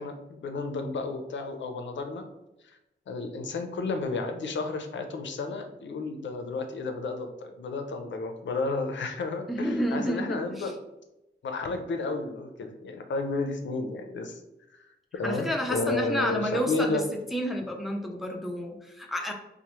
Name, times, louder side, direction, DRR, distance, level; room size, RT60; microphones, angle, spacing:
voice 1, 0.0-2.3 2.6-2.8 3.1-10.8 11.4-14.4 14.7-14.9 15.1-17.0, left 3 dB, 75° left, 6 dB, 0.4 m, -32 dB
voice 2, 9.5-10.7 15.2-17.0 17.3-19.3, equal, ahead, 1 dB, 0.3 m, -30 dB
2.9 x 2.0 x 2.9 m, 0.93 s
wide cardioid pair, 125°, 19 cm